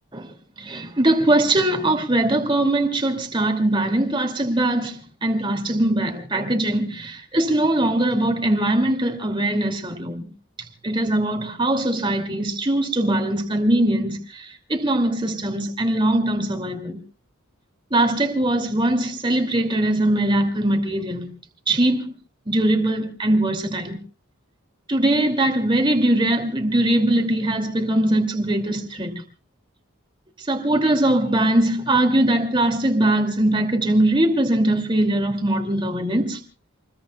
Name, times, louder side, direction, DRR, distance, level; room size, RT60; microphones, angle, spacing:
voice 1, 0.6-10.3 10.8-17.0 17.9-21.3 21.7-22.1 22.5-24.0 24.9-29.1 30.5-36.4, right 1 dB, 20° right, 2.3 m, -21 dB
28.0 x 21.0 x 2.3 m
head